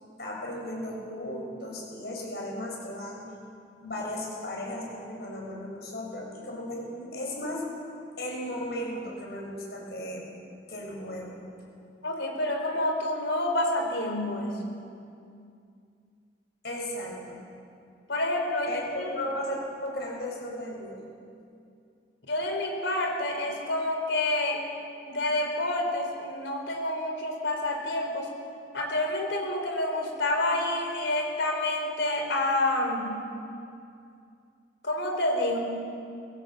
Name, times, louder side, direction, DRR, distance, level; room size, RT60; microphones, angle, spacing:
voice 1, 0.2-3.3 3.8-7.7 8.2-10.2 10.7-11.4 16.6-17.4 18.7-20.9, left 1 dB, 60° left, -2 dB, 6.7 m, -35 dB
voice 2, 12.0-14.6 18.1-18.7 18.9-19.1 22.3-24.6 25.1-28.3 28.7-33.2 34.8-35.6, left 1 dB, 90° left, 2 dB, 4.4 m, -28 dB
22.5 x 16.5 x 8.3 m, 2.4 s
head